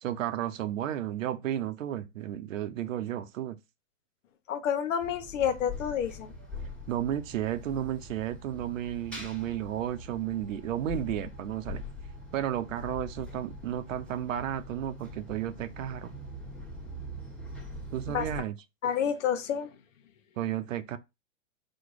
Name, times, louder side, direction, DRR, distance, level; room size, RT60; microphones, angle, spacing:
voice 1, 0.0-3.6 6.9-11.8 12.3-16.2 17.9-18.5 20.4-21.0, right 11 dB, 80° right, 0.8 m, -33 dB
voice 2, 4.5-6.3 18.1-18.3 18.8-19.7, left 8 dB, 75° left, 1.0 m, -29 dB
sound 1, 5.0-18.4, left 1 dB, 5° left, 1.3 m, -43 dB
4.2 x 2.4 x 4.7 m
hypercardioid pair, 135°, 38 cm